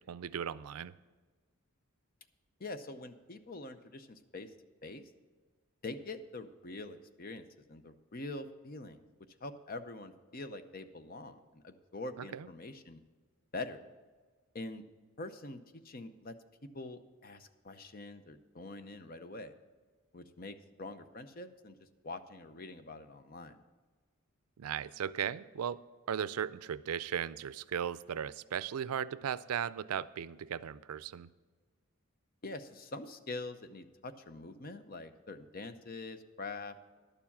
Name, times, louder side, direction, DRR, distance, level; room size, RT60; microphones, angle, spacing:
voice 1, 0.1-0.9 12.2-12.5 24.6-25.8 26.1-31.3, right 8 dB, 85° right, 17 dB, 0.4 m, -37 dB
voice 2, 2.6-4.5 4.8-5.1 5.8-9.0 9.4-13.0 13.5-13.8 14.5-14.8 15.2-15.6 15.8-16.4 16.6-19.5 20.1-23.6 32.4-36.8, left 2 dB, 40° left, 10 dB, 0.7 m, -44 dB
11.0 x 7.1 x 7.3 m, 1.4 s
head